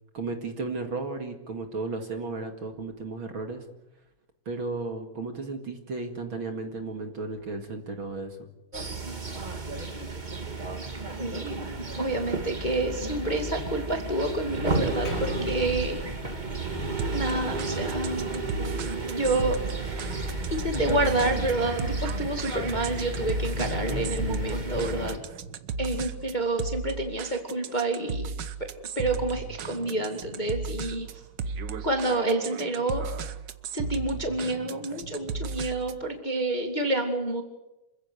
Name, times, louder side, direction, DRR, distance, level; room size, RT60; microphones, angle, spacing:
voice 1, 0.1-3.6 4.5-8.5, right 3 dB, 45° right, 6 dB, 2.5 m, -34 dB
sound 1, 8.7-25.2, right 2 dB, 20° right, 1.5 m, -32 dB
voice 2, 11.2-16.0 17.1-18.2 19.1-19.6 19.8-25.2 25.8-28.3 29.0-31.1 31.8-33.0 33.7-37.4, right 2 dB, 15° left, 4 dB, 1.9 m, -29 dB
Percussion, 15.1-19.8, left 3 dB, 40° left, 3.5 m, -42 dB
sound 2, 17.0-36.1, right 5 dB, 85° right, 0.9 m, -35 dB
27.5 x 16.0 x 9.7 m, 0.96 s
omnidirectional pair, 3.5 m